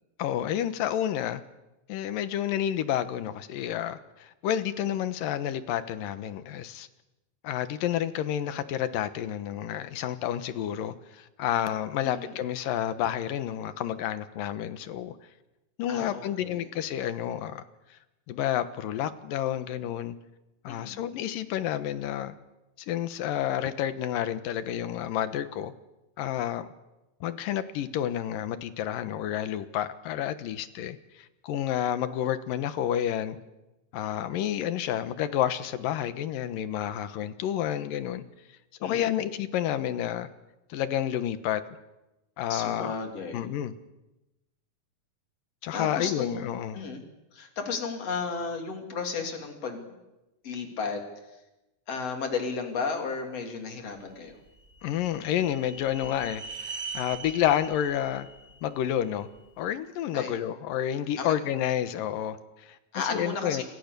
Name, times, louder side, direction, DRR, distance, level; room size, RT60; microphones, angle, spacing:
voice 1, 0.2-1.4 1.9-6.9 7.4-15.2 15.8-17.6 18.3-20.2 20.6-22.3 22.9-25.7 26.2-26.7 27.2-33.4 33.9-38.2 38.8-40.3 40.7-41.6 42.4-42.9 43.3-43.7 45.6-46.8 54.8-58.3 58.6-59.3 59.6-62.8 63.1-63.6, left 11 dB, 75° left, 12 dB, 2.9 m, -30 dB
voice 2, 12.0-12.4 15.9-16.7 20.7-20.9 38.8-39.2 42.5-43.4 45.7-47.0 47.3-50.0 50.4-51.0 51.9-54.4 60.1-60.4 61.2-61.3 62.9-63.6, left 5 dB, 45° left, 4 dB, 4.3 m, -34 dB
sound 1, 54.3-59.5, right 4 dB, 30° right, 1.4 m, -42 dB
29.0 x 25.0 x 6.9 m, 1.0 s
omnidirectional pair, 4.0 m